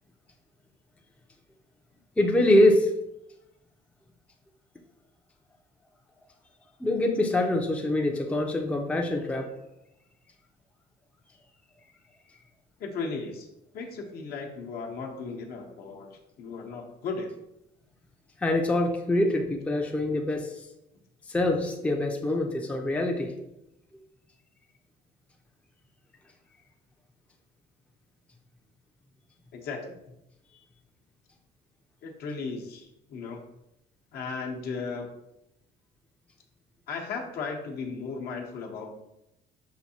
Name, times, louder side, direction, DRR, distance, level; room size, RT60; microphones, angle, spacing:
voice 1, 2.2-2.9 6.8-9.5 18.4-20.5 21.3-23.3, left 1 dB, 5° left, 2 dB, 0.4 m, -24 dB
voice 2, 12.8-13.5 13.7-17.3 29.5-30.0 32.0-33.4 34.1-35.1 36.9-38.9, left 4 dB, 65° left, 1 dB, 0.8 m, -36 dB
5.9 x 2.6 x 2.8 m, 0.86 s
cardioid pair, 110°, 17 cm